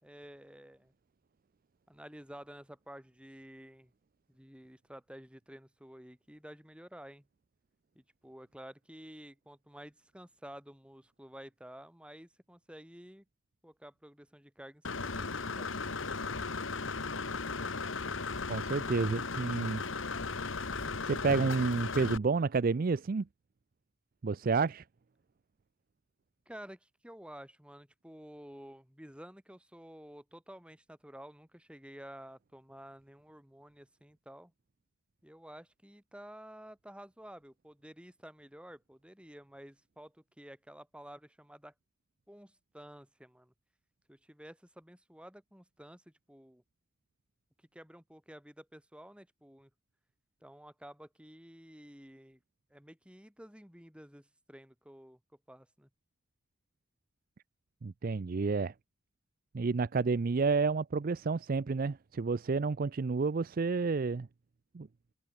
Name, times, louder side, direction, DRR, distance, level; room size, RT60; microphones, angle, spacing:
voice 1, 0.0-0.9 1.9-3.9 4.3-7.3 7.9-13.2 13.6-15.7 26.5-34.5 35.2-41.7 42.3-43.5 44.1-46.6 47.7-49.7 50.4-52.4 52.7-55.2 55.5-55.9, equal, 5° right, 4.6 m, -51 dB
Engine / Mechanisms, 14.8-22.2, left 4 dB, 65° left, 1.7 m, -36 dB
voice 2, 18.5-19.8 21.1-23.3 24.2-24.8 57.8-58.7 59.5-64.3 64.7-64.9, right 4 dB, 45° right, 0.4 m, -30 dB
open air
head